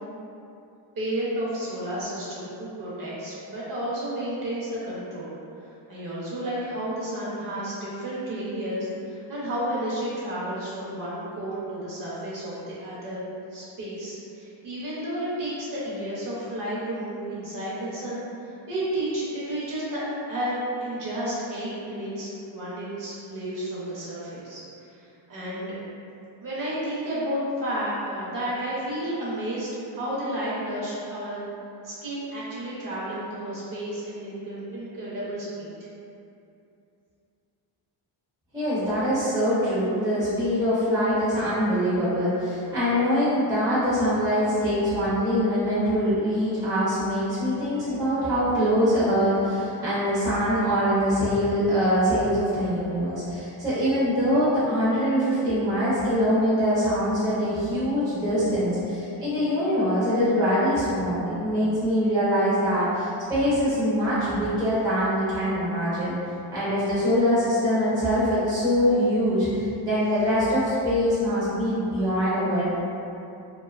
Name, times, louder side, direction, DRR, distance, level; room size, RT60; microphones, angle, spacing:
voice 1, 1.0-5.3 5.6-13.2 13.5-20.5 20.8-25.8 26.4-31.4 31.8-35.7, right 1 dB, 45° right, -8 dB, 0.7 m, -32 dB
voice 2, 38.5-66.2 66.5-72.6, equal, 10° right, -12 dB, 0.5 m, -23 dB
2.5 x 2.3 x 2.3 m, 2.6 s
cardioid pair, 165°, 46 cm